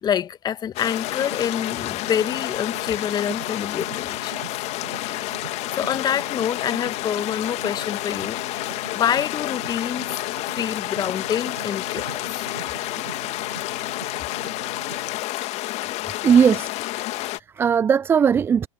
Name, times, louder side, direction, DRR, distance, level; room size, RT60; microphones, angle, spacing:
voice 1, 0.0-4.3 5.7-8.4 8.9-10.2 10.5-12.5, left 9 dB, 25° left, 1.4 m, -26 dB
sound 1, 0.7-17.4, left 18 dB, 40° left, 2.2 m, -30 dB
sound 2, 0.8-15.2, right 10 dB, 70° right, 6.1 m, -43 dB
voice 2, 16.2-17.1 17.3-18.7, right 7 dB, 15° right, 0.3 m, -19 dB
figure-of-eight pair, 95°, 18 cm